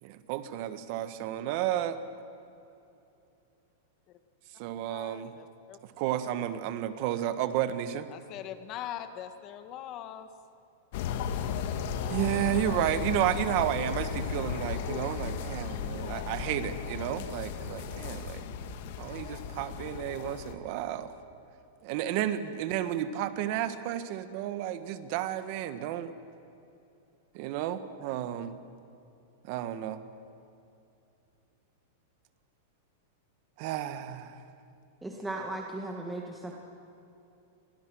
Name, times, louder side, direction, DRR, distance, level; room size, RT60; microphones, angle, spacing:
voice 1, 0.0-2.0 4.6-5.3 6.0-8.1 12.1-18.4 19.0-21.1 21.8-26.1 27.3-28.6 29.4-30.0 33.6-34.4, right 11 dB, 45° right, 12 dB, 1.5 m, -32 dB
voice 2, 4.9-5.8 6.1-6.2 8.1-10.3, left 11 dB, 30° left, 9 dB, 1.7 m, -41 dB
sound 1, 10.9-20.6, left 7 dB, 50° left, 1.9 m, -35 dB
voice 3, 35.0-36.5, right 2 dB, 5° right, 0 dB, 1.9 m, -36 dB
29.5 x 24.0 x 6.3 m, 2.8 s
supercardioid pair, 165°, 0 cm